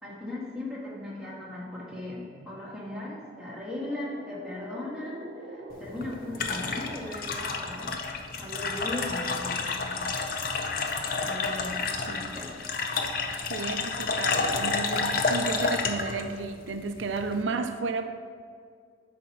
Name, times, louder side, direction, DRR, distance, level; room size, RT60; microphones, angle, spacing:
voice 1, 0.0-7.9 8.4-10.0 11.2-12.5, left 1 dB, 5° right, -7 dB, 1.8 m, -38 dB
sound 1, 1.8-7.6, right 1 dB, 70° right, 1.0 m, -47 dB
sound 2, 5.7-17.4, left 4 dB, 50° left, 0.6 m, -30 dB
voice 2, 13.5-18.1, right 4 dB, 90° right, 7 dB, 0.5 m, -33 dB
9.1 x 4.3 x 5.8 m, 2.1 s
head